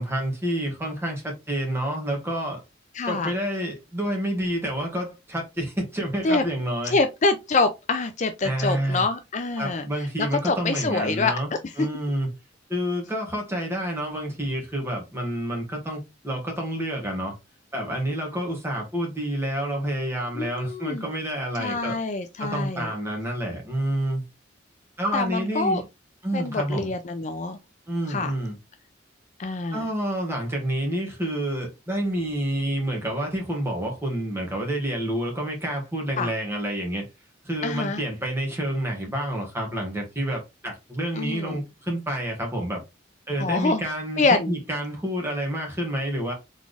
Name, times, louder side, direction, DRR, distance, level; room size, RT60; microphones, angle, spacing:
voice 1, 0.0-2.6 3.1-6.9 8.4-9.0 9.6-11.5 11.8-12.3 12.7-17.3 17.7-22.0 22.4-24.2 25.0-25.8 26.2-26.9 27.9-28.5 29.7-37.0 37.4-42.8 43.3-46.3, right 1 dB, 15° right, 1.7 m, -28 dB
voice 2, 2.9-3.3 6.2-6.4 6.9-9.8 10.2-11.3 11.6-11.7 20.3-21.1 21.6-22.9 25.1-25.8 26.3-27.6 28.1-28.3 29.4-29.9 36.2-36.3 37.6-38.0 41.2-41.6 43.4-43.8 44.2-44.5, left 3 dB, 40° left, 0.5 m, -25 dB
4.1 x 3.6 x 3.3 m
head